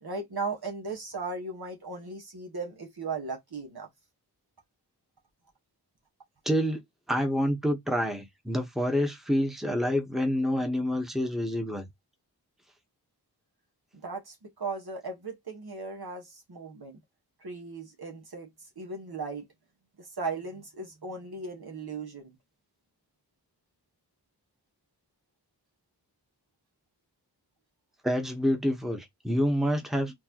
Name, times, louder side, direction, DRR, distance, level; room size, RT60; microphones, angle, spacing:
voice 1, 0.0-3.9 14.0-17.0 17.4-18.5 18.8-19.5 20.0-22.3, right 3 dB, 65° right, 1.5 m, -37 dB
voice 2, 6.4-6.8 7.1-11.9 28.0-30.1, equal, ahead, 1.1 m, -27 dB
4.4 x 2.6 x 2.9 m
wide cardioid pair, 55°, 40 cm